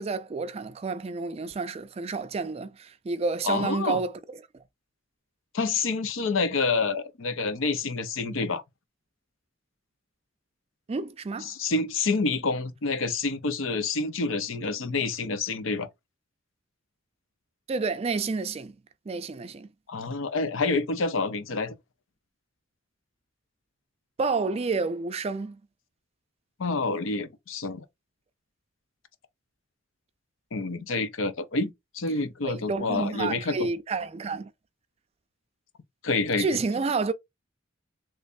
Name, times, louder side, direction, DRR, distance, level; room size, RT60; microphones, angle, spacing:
voice 1, 0.0-4.1 10.9-11.5 17.7-18.7 19.1-19.7 24.2-25.6 32.4-34.5 36.4-37.1, right 4 dB, 30° right, 0.3 m, -29 dB
voice 2, 3.4-4.0 5.5-8.6 11.4-15.9 19.9-21.7 26.6-27.8 30.5-33.6 36.0-36.6, left 3 dB, 80° left, 0.6 m, -28 dB
3.3 x 3.2 x 2.5 m
head